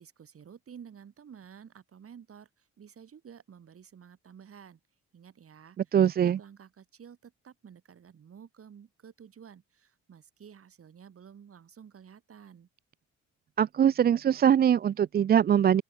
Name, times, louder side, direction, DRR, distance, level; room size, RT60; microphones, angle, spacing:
voice 1, 0.0-4.8 5.1-5.9 6.2-12.7, right 7 dB, 50° right, 2.9 m, -51 dB
voice 2, 5.9-6.4 13.6-15.8, right 9 dB, 35° right, 0.4 m, -22 dB
open air
cardioid pair, 90°, 30 cm